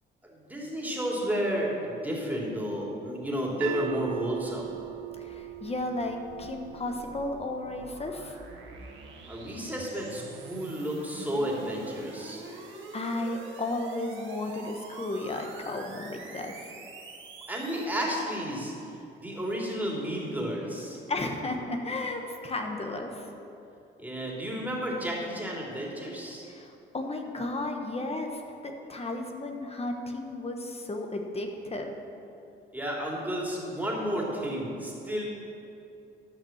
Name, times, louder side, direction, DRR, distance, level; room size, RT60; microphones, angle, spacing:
voice 1, 0.2-4.7 9.3-12.4 17.5-18.7 19.2-21.0 24.0-26.4 32.7-35.2, equal, 10° right, -3 dB, 2.9 m, -32 dB
sound 1, 3.6-9.8, right 13 dB, 85° right, 0.4 m, -41 dB
sound 2, 4.7-17.8, right 3 dB, 70° right, 1.7 m, -46 dB
voice 2, 5.2-8.4 12.4-16.7 21.1-23.3 26.4-31.9, left 2 dB, 30° left, 3 dB, 1.2 m, -34 dB
12.0 x 5.9 x 7.3 m, 2.8 s
cardioid pair, 90°, 20 cm